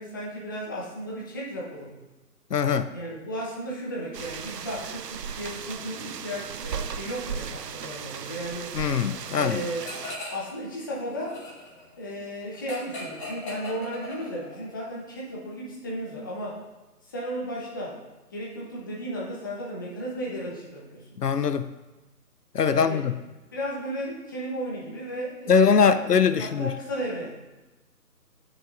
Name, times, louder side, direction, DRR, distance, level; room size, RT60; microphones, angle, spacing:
voice 1, 0.0-2.0 2.9-8.7 9.3-9.9 10.3-11.4 12.0-16.6 17.0-18.0 18.3-21.1 22.7-23.1 23.5-26.0 26.3-27.3, equal, 15° left, -5 dB, 1.0 m, -34 dB
voice 2, 2.5-2.9 8.7-9.6 21.2-21.7 22.5-23.2 25.5-26.7, left 6 dB, 80° left, 10 dB, 0.7 m, -22 dB
sound 1, 4.1-10.2, right 7 dB, 85° right, 0.7 m, -36 dB
sound 2, 9.8-10.6 10.9-14.7, left 2 dB, 30° left, 2.6 m, -39 dB
15.5 x 6.4 x 2.6 m, 1.1 s
figure-of-eight pair, 160°, 47 cm